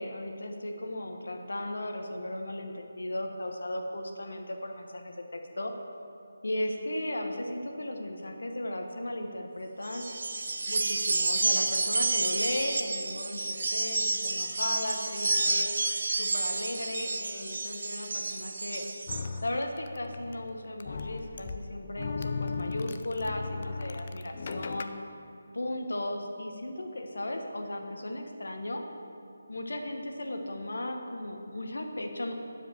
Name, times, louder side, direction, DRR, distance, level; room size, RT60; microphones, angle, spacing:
voice 1, 0.0-5.7 6.4-10.1 10.7-15.7 16.2-18.8 19.4-24.9 25.5-28.8 29.5-32.3, left 1 dB, 80° left, 4 dB, 1.2 m, -36 dB
sound 1, 9.8-19.3, right 3 dB, 60° right, 0.6 m, -30 dB
sound 2, 19.1-24.8, left 4 dB, 35° left, 0.4 m, -37 dB
10.5 x 5.0 x 7.5 m, 2.7 s
figure-of-eight pair, 170°, 0 cm